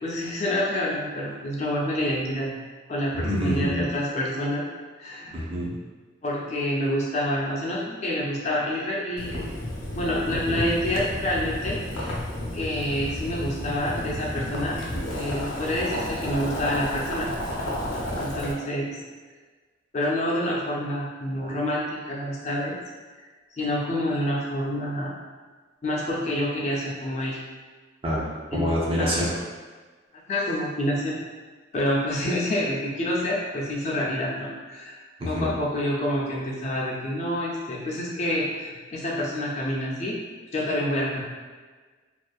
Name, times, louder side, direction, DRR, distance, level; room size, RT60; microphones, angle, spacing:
voice 1, 0.0-2.5 2.9-4.7 5.0-5.4 6.2-9.5 9.9-12.2 12.5-14.8 15.1-17.3 18.2-19.0 19.9-22.8 23.6-25.1 25.8-27.4 28.5-28.7 29.0-29.2 30.3-31.2 31.7-35.0 35.2-40.2 40.5-41.2, left 1 dB, 35° left, -4 dB, 0.3 m, -27 dB
voice 2, 3.1-3.8 5.3-5.8 28.0-29.3 35.2-35.5, equal, 30° right, -6 dB, 0.5 m, -26 dB
Boiling, 9.2-18.5, left 1 dB, 85° left, 0.6 m, -31 dB
2.6 x 2.4 x 2.2 m, 1.4 s
head